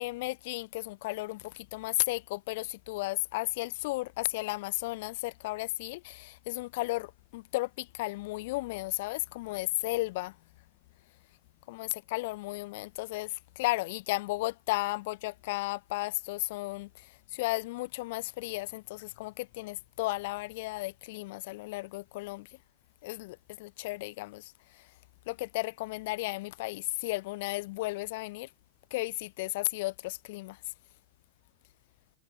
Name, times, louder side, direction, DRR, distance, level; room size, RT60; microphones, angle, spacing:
voice 1, 0.0-10.4 11.7-22.5 23.0-24.9 25.3-28.5 28.9-30.6, left 21 dB, 50° left, 7.0 m, -34 dB
figure-of-eight pair, 90°, 0 cm